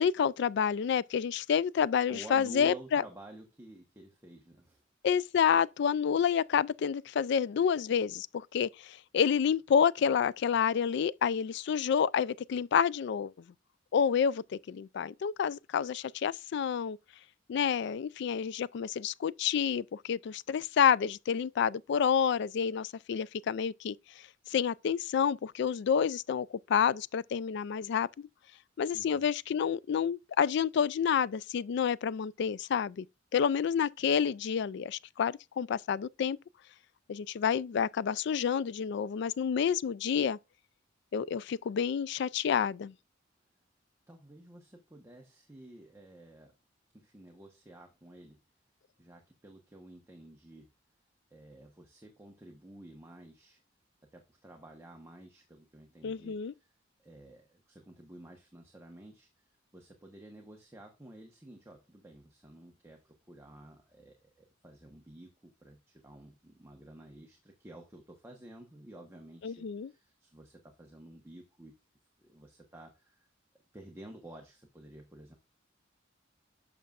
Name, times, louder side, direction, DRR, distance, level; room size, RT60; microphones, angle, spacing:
voice 1, 0.0-3.0 5.0-13.3 13.9-17.0 17.5-24.0 24.5-28.3 28.8-33.1 33.3-36.4 37.1-40.4 41.1-42.9 56.0-56.5 69.4-69.9, left 7 dB, 60° left, 0.3 m, -29 dB
voice 2, 2.1-4.8 28.9-29.2 44.1-46.5 46.9-48.4 49.0-50.7 51.3-53.6 54.1-56.7 57.0-59.3 59.7-71.7 72.2-73.3 73.7-75.3, right 1 dB, 15° right, 1.0 m, -52 dB
11.0 x 6.5 x 2.4 m
head